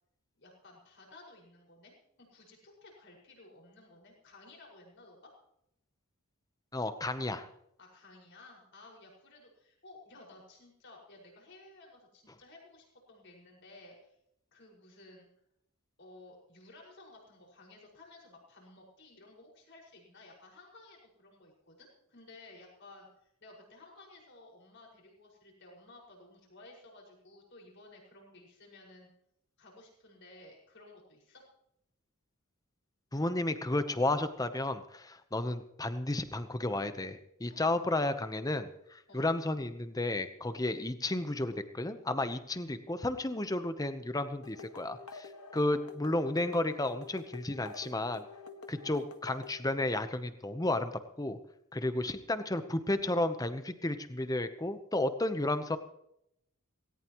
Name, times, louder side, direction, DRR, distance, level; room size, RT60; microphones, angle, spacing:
voice 1, 0.4-1.9 2.2-5.3 7.8-14.2 14.5-15.3 16.0-29.1 29.6-31.4 37.4-37.8 39.1-39.3, left 2 dB, 55° left, -1 dB, 5.7 m, -55 dB
voice 2, 6.7-7.5 33.1-48.2 48.7-50.9 51.2-51.4 51.7-55.8, left 2 dB, 15° left, 10 dB, 0.9 m, -32 dB
sound 1, 44.4-49.6, left 4 dB, 80° left, 1.6 m, -48 dB
18.0 x 18.0 x 3.1 m, 0.77 s
head